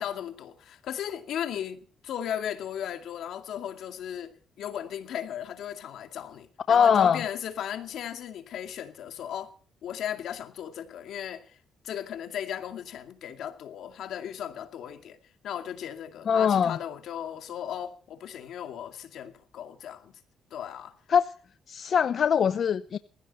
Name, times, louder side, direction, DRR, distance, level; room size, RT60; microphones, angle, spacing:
voice 1, 0.0-9.5 9.8-11.6 11.8-15.2 15.4-20.2 20.5-20.9, left 9 dB, 75° left, 2.3 m, -36 dB
voice 2, 6.7-7.2 16.3-16.8 21.1-21.3 21.7-23.0, left 7 dB, 55° left, 0.7 m, -22 dB
20.0 x 15.5 x 4.2 m
cardioid pair, 90°, 0 cm